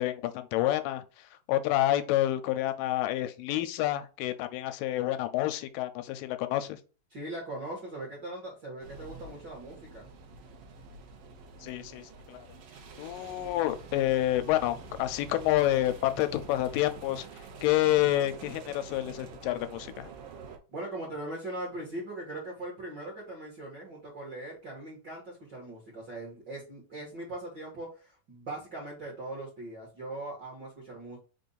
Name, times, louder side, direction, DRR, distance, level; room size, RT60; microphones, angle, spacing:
voice 1, 0.0-6.8 11.6-12.4 13.0-17.3 17.6-20.1, left 14 dB, 85° left, 2.2 m, -28 dB
voice 2, 7.1-10.0 20.7-31.2, right 1 dB, 50° right, 1.3 m, -40 dB
sound 1, 8.8-20.6, right 5 dB, 80° right, 1.3 m, -47 dB
5.2 x 2.5 x 3.9 m
omnidirectional pair, 3.9 m